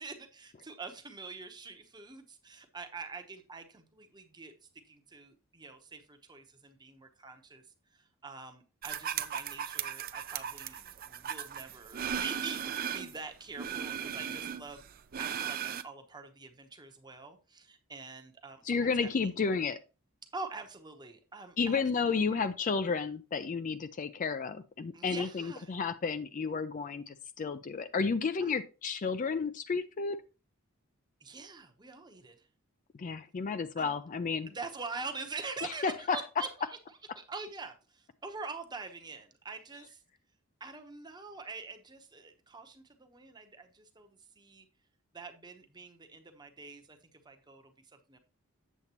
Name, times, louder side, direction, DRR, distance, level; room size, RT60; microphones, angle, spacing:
voice 1, 0.0-4.5 4.9-7.6 7.9-14.8 15.2-19.3 20.3-22.5 24.9-25.8 28.4-28.5 31.2-32.3 33.8-33.9 34.5-40.0 40.6-44.7 45.1-47.0 47.2-48.2, right 4 dB, 20° right, 0.8 m, -45 dB
sound 1, 8.8-13.2 13.6-15.8, right 9 dB, 45° right, 0.4 m, -37 dB
voice 2, 18.6-19.8 21.6-30.2 33.0-34.5 35.6-36.2, left 5 dB, 35° left, 0.4 m, -32 dB
8.1 x 7.1 x 2.9 m
head